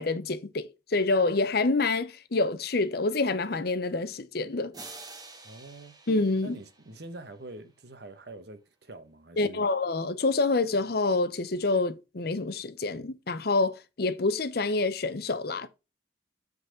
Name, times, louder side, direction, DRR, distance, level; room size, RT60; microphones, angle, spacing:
voice 1, 0.0-4.7 6.1-6.6 9.4-15.7, left 3 dB, 50° left, 0.7 m, -27 dB
sound 1, 4.7-7.4, right 3 dB, 20° right, 1.0 m, -48 dB
voice 2, 5.4-5.9 6.4-9.7, right 2 dB, 55° right, 1.1 m, -45 dB
8.0 x 4.1 x 4.8 m
head